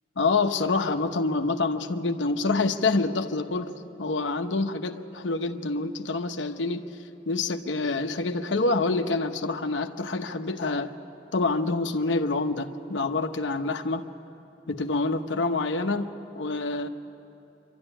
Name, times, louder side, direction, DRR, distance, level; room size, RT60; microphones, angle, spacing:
voice 1, 0.2-3.7 4.0-6.8 7.3-10.9 11.3-14.0 14.7-16.9, left 3 dB, 85° left, 6 dB, 0.8 m, -27 dB
25.0 x 12.5 x 10.0 m, 2.9 s
head